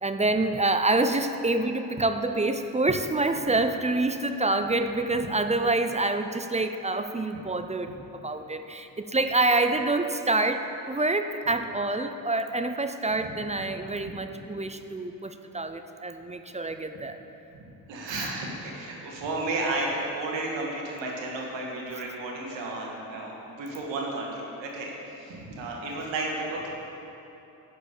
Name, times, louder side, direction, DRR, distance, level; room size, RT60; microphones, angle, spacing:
voice 1, 0.0-17.2, right 2 dB, 15° right, 8 dB, 0.6 m, -27 dB
voice 2, 17.5-23.3 23.6-24.9 25.2-26.7, right 2 dB, 75° right, -2 dB, 1.9 m, -33 dB
11.5 x 5.0 x 6.7 m, 3.0 s
supercardioid pair, 55°, 45 cm